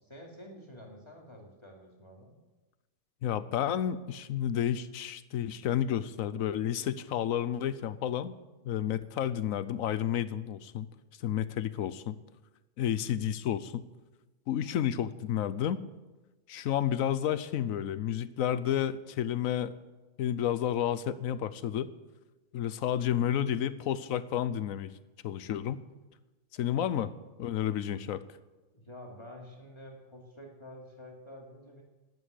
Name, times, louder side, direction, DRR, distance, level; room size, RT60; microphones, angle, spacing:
voice 1, 0.0-2.3 28.7-31.8, left 1 dB, 20° left, -1 dB, 2.7 m, -49 dB
voice 2, 3.2-8.3 8.6-10.9 11.2-12.2 12.8-13.8 14.5-15.8 16.5-19.7 20.2-21.9 22.5-24.9 25.2-25.8 26.6-27.1 27.4-28.2, left 10 dB, 85° left, 15 dB, 1.1 m, -31 dB
12.5 x 9.4 x 8.3 m, 1.1 s
omnidirectional pair, 1.4 m